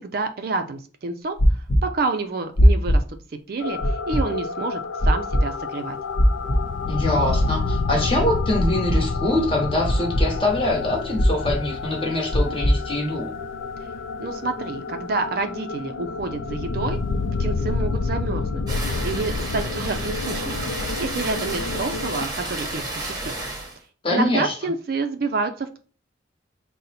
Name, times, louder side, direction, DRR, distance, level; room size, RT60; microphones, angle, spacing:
voice 1, 0.0-3.0 3.5-6.0 14.2-17.0 17.4-18.6 19.0-23.3 24.1-25.8, right 3 dB, 50° right, 8 dB, 0.4 m, -28 dB
sound 1, 1.4-1.8 2.6-3.0 3.8-4.2 5.0-5.4 6.2-6.6 7.4-7.8 8.6-9.0 9.9-10.3 11.2-11.6 12.3-12.7, equal, 55° left, 0.7 m, -17 dB
sound 2, 3.6-22.3, left 4 dB, 90° left, 0.3 m, -29 dB
voice 2, 6.9-13.3 24.0-24.5, left 1 dB, 30° left, 0 dB, 1.0 m, -24 dB
sound 3, 18.7-23.8, right 2 dB, 20° right, 0.9 m, -31 dB
3.9 x 2.1 x 4.0 m, 0.38 s
head